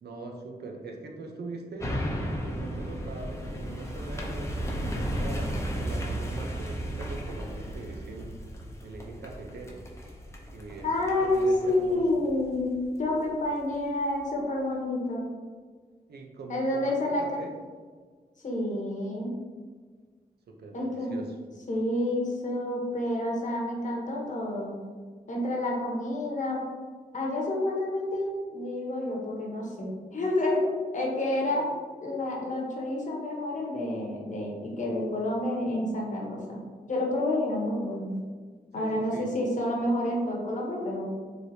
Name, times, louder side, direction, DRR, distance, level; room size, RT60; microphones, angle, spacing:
voice 1, 0.0-2.0 2.4-8.3 8.8-9.8 10.5-10.9 11.2-12.2 16.1-17.5 20.5-21.4 38.7-39.3, right 3 dB, 90° right, 2 dB, 0.6 m, -42 dB
sound 1, 1.8-13.2 13.7-13.8, equal, 15° left, 0.6 m, -35 dB
voice 2, 10.8-15.3 16.5-17.4 18.4-19.3 20.7-21.1 21.7-24.8 25.3-26.6 27.1-30.7 30.9-31.7 32.0-36.6 36.9-38.1 38.7-41.1, left 1 dB, 50° left, -2 dB, 1.0 m, -29 dB
4.5 x 3.2 x 2.7 m, 1.5 s
wide cardioid pair, 125°, 16 cm